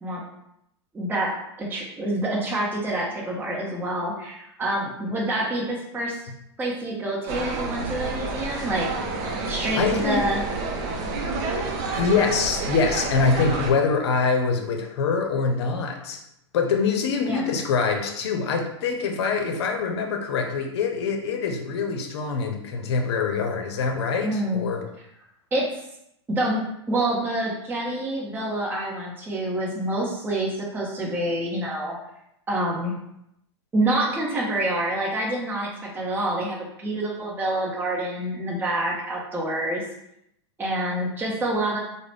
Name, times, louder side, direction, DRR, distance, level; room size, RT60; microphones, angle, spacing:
voice 1, 0.9-1.3 1.6-6.2 6.6-8.9 9.5-10.4 17.2-17.5 24.2-24.7 25.5-25.9 26.3-26.6 26.9-31.9 32.5-32.9 33.7-39.8 40.6-41.8, right 1 dB, 15° right, -4 dB, 0.8 m, -27 dB
sound 1, 7.3-13.7, right 3 dB, 45° right, 0.6 m, -29 dB
voice 2, 9.8-10.2 11.9-16.2 16.5-24.8, left 5 dB, 65° left, 4 dB, 0.7 m, -24 dB
3.7 x 2.1 x 3.2 m, 0.79 s
hypercardioid pair, 110°, 15 cm